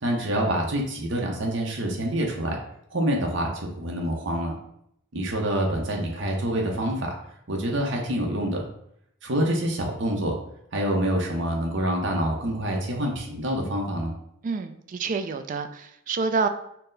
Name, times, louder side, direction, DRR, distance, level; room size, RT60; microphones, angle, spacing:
voice 1, 0.0-2.6 2.9-4.6 5.1-7.1 7.5-8.6 9.2-10.4 10.7-14.1, right 1 dB, 65° right, 0 dB, 0.8 m, -26 dB
voice 2, 14.4-16.5, right 4 dB, 40° right, 8 dB, 0.3 m, -28 dB
4.4 x 2.1 x 3.8 m, 0.74 s
head